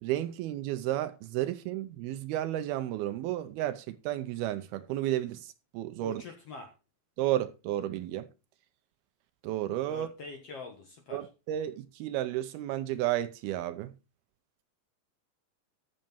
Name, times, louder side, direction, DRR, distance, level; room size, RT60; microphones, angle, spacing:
voice 1, 0.0-6.2 7.2-8.3 9.4-10.1 11.1-13.9, right 13 dB, 80° right, 2.4 m, -32 dB
voice 2, 6.0-6.7 9.9-11.3, left 3 dB, 60° left, 1.7 m, -44 dB
13.0 x 7.7 x 4.4 m
omnidirectional pair, 4.8 m